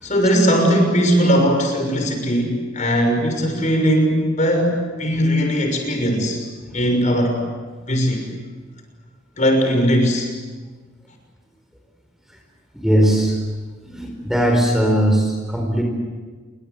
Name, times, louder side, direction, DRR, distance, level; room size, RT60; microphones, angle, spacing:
voice 1, 0.0-6.5 6.7-7.4 7.9-8.2 9.4-10.3, equal, 40° left, 4 dB, 6.2 m, -19 dB
voice 2, 12.7-13.4 13.8-15.8, equal, ahead, 2 dB, 4.5 m, -19 dB
29.0 x 24.0 x 8.2 m, 1.4 s
head